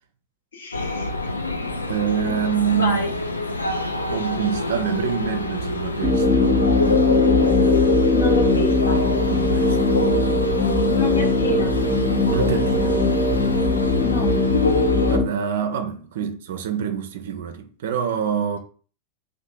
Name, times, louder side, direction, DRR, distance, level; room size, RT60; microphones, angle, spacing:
voice 1, 0.5-1.1 2.7-3.1 8.1-9.0 10.9-11.7 14.0-14.4, left 4 dB, 65° left, 0.7 m, -27 dB
sound 1, 0.7-15.2, left 2 dB, 80° left, 0.3 m, -25 dB
voice 2, 1.9-3.0 4.1-6.5 9.3-9.8 12.3-13.0 15.1-18.6, right 8 dB, 55° right, 0.4 m, -26 dB
sound 2, 6.0-15.2, left 2 dB, ahead, 0.7 m, -20 dB
2.8 x 2.0 x 3.2 m
figure-of-eight pair, 90°, 0 cm